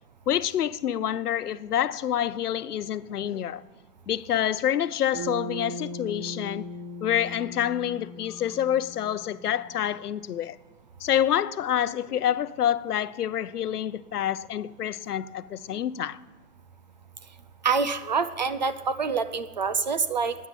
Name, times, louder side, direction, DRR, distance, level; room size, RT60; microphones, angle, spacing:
voice 1, 0.3-3.6 4.1-6.7 7.0-10.6 11.0-16.2, left 10 dB, 75° left, 0.8 m, -27 dB
Bass guitar, 5.1-9.5, equal, 10° right, 4.3 m, -38 dB
voice 2, 17.6-20.4, right 5 dB, 30° right, 0.4 m, -26 dB
12.5 x 9.6 x 9.0 m
hypercardioid pair, 145°, 46 cm